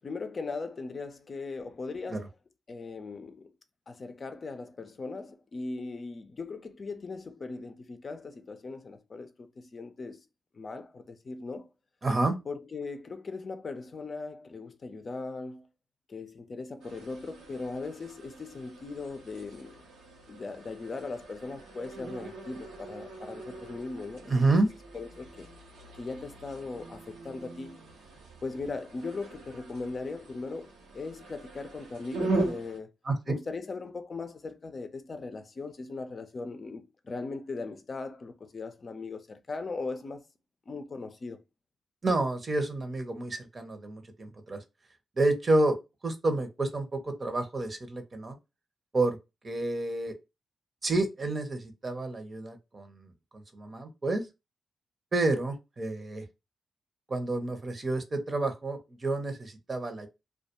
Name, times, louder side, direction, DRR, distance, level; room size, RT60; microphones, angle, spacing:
voice 1, 0.0-2.3 2.7-3.5 3.9-10.2 10.5-11.7 12.5-15.7 16.1-19.9 20.3-24.3 24.9-25.5 25.9-27.8 28.4-32.9 33.3-40.2 40.7-41.4, left 3 dB, 50° left, 0.5 m, -39 dB
voice 2, 12.0-12.4 24.3-24.7 33.0-33.2 42.0-44.6 45.2-45.8 46.0-48.4 48.9-49.2 49.4-50.1 50.8-54.3 55.1-56.2 57.1-60.1, right 2 dB, 45° right, 0.8 m, -29 dB
sound 1, 16.8-32.8, right 2 dB, 90° right, 0.8 m, -40 dB
2.3 x 2.2 x 2.8 m
supercardioid pair, 45°, 0 cm